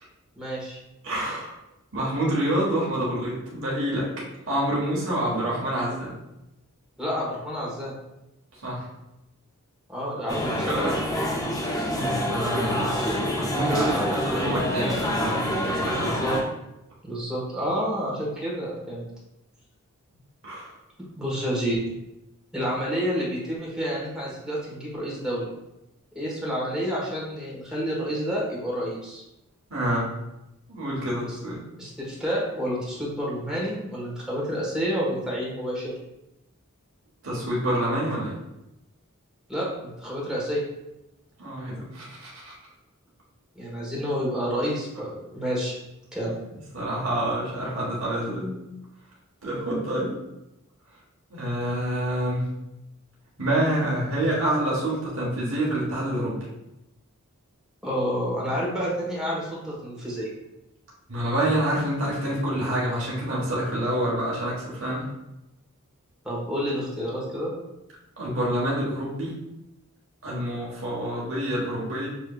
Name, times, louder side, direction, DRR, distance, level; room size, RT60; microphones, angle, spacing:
voice 1, 0.4-0.8 7.0-7.9 9.9-10.8 15.9-16.4 17.0-19.0 21.2-21.8 22.5-25.5 26.1-29.2 31.3-31.4 31.8-35.9 39.5-40.6 43.5-45.7 46.1-46.3 57.8-60.3 66.2-67.5, equal, 5° right, -6 dB, 1.1 m, -29 dB
voice 2, 1.0-1.5 1.9-4.1 4.5-6.2 8.6-8.9 10.7-10.9 11.9-16.2 20.4-20.7 29.7-30.1 30.7-31.6 37.2-38.4 41.4-42.5 46.7-48.6 49.4-50.2 51.3-52.5 53.4-56.4 61.1-65.0 68.2-69.4 70.2-72.1, right 1 dB, 60° right, -5 dB, 1.1 m, -27 dB
sound 1, 10.3-16.4, equal, 15° left, 0.5 m, -27 dB
6.3 x 2.7 x 2.3 m, 0.90 s
head